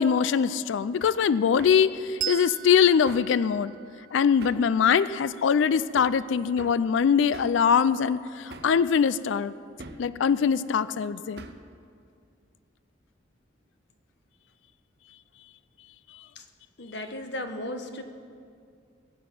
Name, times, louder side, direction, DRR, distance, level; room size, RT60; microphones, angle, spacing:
voice 1, 0.0-3.7 4.1-9.5 10.0-11.4, left 7 dB, 80° left, 16 dB, 0.4 m, -23 dB
Hammer, 1.0-1.2 1.6-1.8 3.1-3.3 4.4-4.7 6.0-6.2 6.6-6.8 7.3-7.6 8.5-8.8 9.8-10.1 11.4-11.7, right 3 dB, 60° right, 0.7 m, -44 dB
Bell, 2.2-5.3, right 13 dB, 40° right, 0.3 m, -38 dB
voice 2, 16.8-18.0, left 1 dB, 65° left, 6 dB, 1.1 m, -35 dB
21.0 x 7.7 x 6.0 m, 2.3 s
head